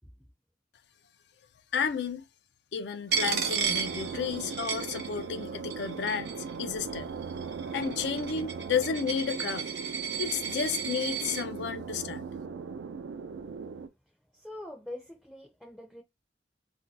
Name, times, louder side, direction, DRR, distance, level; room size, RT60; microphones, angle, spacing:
voice 1, 1.7-2.2 2.7-7.1 7.7-9.7 10.2-12.3, left 6 dB, 70° left, 0.4 m, -32 dB
Coin (dropping), 3.1-5.4 5.7-6.5 7.2-11.4, right 7 dB, 65° right, 0.8 m, -33 dB
sound 1, 3.1-13.9, right 5 dB, 85° right, 0.4 m, -39 dB
voice 2, 14.3-16.0, left 1 dB, 5° left, 0.4 m, -43 dB
2.6 x 2.2 x 4.0 m
head